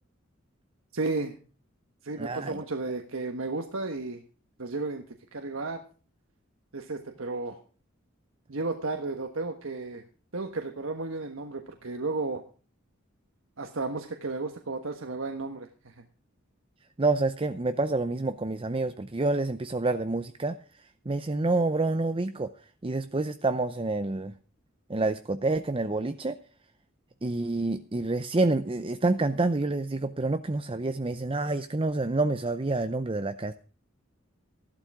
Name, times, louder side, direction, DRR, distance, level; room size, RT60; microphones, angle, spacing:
voice 1, 0.9-1.3 2.0-4.2 4.6-5.0 5.3-5.8 6.7-7.6 8.5-10.0 10.3-12.4 13.6-16.0, right 3 dB, 85° right, 5 dB, 1.4 m, -33 dB
voice 2, 2.2-2.6 17.0-20.6 21.1-22.5 22.8-24.3 24.9-26.4 27.2-33.5, right 2 dB, 25° right, 10 dB, 0.7 m, -28 dB
14.5 x 12.0 x 4.8 m, 0.39 s
head